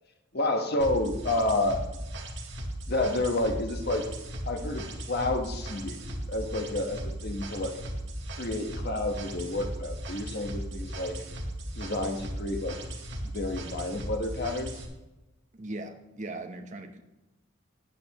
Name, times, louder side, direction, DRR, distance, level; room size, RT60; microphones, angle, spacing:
voice 1, 0.3-1.8 2.9-4.1 4.5-6.0 6.3-7.8 8.4-11.1 11.7-12.8 13.2-14.8, left 2 dB, 50° left, 4 dB, 1.2 m, -30 dB
sound 1, 0.8-14.8, right 1 dB, 55° right, 1.6 m, -37 dB
voice 2, 15.5-17.0, right 2 dB, 35° right, 6 dB, 0.9 m, -39 dB
13.0 x 8.7 x 3.0 m, 1.0 s
head